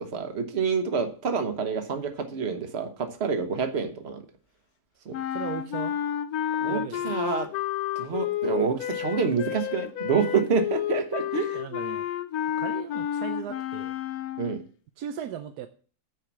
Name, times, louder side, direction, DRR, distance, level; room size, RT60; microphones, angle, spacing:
voice 1, 0.0-4.2 5.0-5.1 6.6-7.5 8.0-11.6 14.4-14.6, right 6 dB, 45° right, 7 dB, 1.3 m, -27 dB
sound 1, 5.1-14.7, left 10 dB, 75° left, 1.1 m, -31 dB
voice 2, 5.3-5.9 6.7-7.1 11.5-12.1 12.6-14.0 15.0-15.7, right 10 dB, 90° right, 8 dB, 1.2 m, -37 dB
9.4 x 4.9 x 6.0 m, 0.42 s
omnidirectional pair, 1.6 m